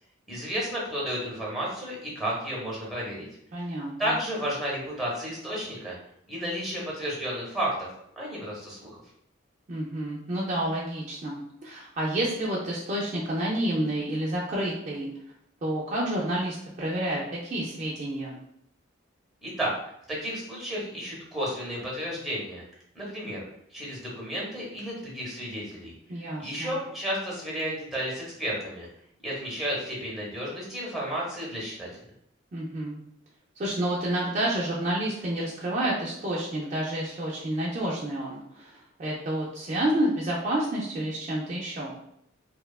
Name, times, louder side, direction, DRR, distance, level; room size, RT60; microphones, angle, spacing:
voice 1, 0.3-3.3 4.0-6.0 6.3-7.9 8.2-9.0 19.4-19.7 20.1-22.6 22.9-23.4 23.7-25.9 26.4-28.9 29.2-31.9, equal, ahead, -4 dB, 0.7 m, -32 dB
voice 2, 3.5-3.9 9.7-15.1 15.6-18.4 26.1-26.7 32.5-33.0 33.6-38.7 39.0-42.0, right 1 dB, 35° right, -5 dB, 0.4 m, -29 dB
2.7 x 2.2 x 2.2 m, 0.75 s
head